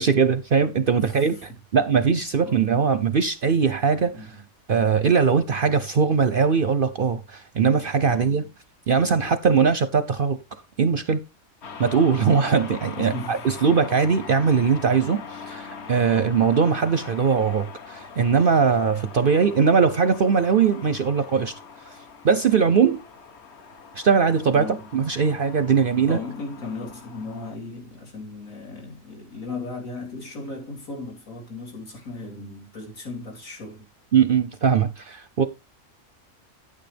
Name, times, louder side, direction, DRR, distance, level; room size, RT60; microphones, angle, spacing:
voice 1, 0.0-4.4 4.7-8.4 8.9-10.4 10.8-11.2 11.8-21.5 21.9-22.0 22.2-23.0 23.9-26.2 34.1-35.4, right 6 dB, 55° right, 0.7 m, -21 dB
voice 2, 0.9-1.3 2.4-2.8 4.1-4.4 8.0-8.5 13.0-13.4 16.1-16.4 24.5-24.9 26.1-33.9, left 2 dB, 75° left, 3.7 m, -36 dB
sound 1, 11.6-27.6, left 5 dB, 55° left, 1.3 m, -42 dB
9.6 x 8.9 x 3.4 m
omnidirectional pair, 1.4 m